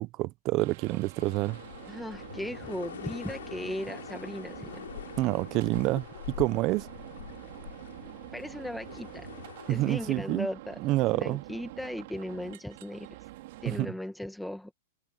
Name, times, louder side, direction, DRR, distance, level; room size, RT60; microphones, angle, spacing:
voice 1, 0.0-1.6 5.2-6.9 9.7-10.5 10.8-11.4 13.7-13.9, right 19 dB, 35° right, 0.5 m, -28 dB
sound 1, 0.6-13.8, right 18 dB, 55° right, 3.3 m, -47 dB
sound 2, 1.2-10.1, left 10 dB, 90° left, 5.1 m, -44 dB
voice 2, 1.9-4.8 8.3-9.3 9.7-10.8 11.1-13.1 13.6-14.7, left 1 dB, ahead, 1.3 m, -37 dB
supercardioid pair, 155°, 0 cm